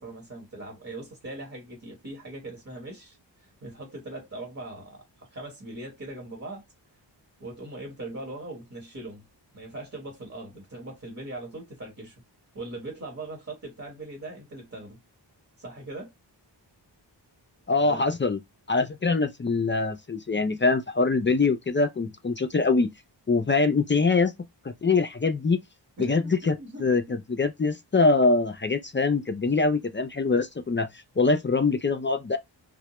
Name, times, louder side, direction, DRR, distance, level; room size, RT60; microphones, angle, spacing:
voice 1, 0.0-6.6 7.4-9.2 9.5-12.2 12.5-15.0 15.6-16.1 17.8-18.0 26.0-27.2, right 2 dB, 35° right, 1.1 m, -40 dB
voice 2, 17.7-18.4 18.7-22.9 23.3-24.3 24.6-25.6 26.0-30.9 31.2-32.4, left 3 dB, 30° left, 0.3 m, -24 dB
2.1 x 2.0 x 2.9 m
wide cardioid pair, 65°, 44 cm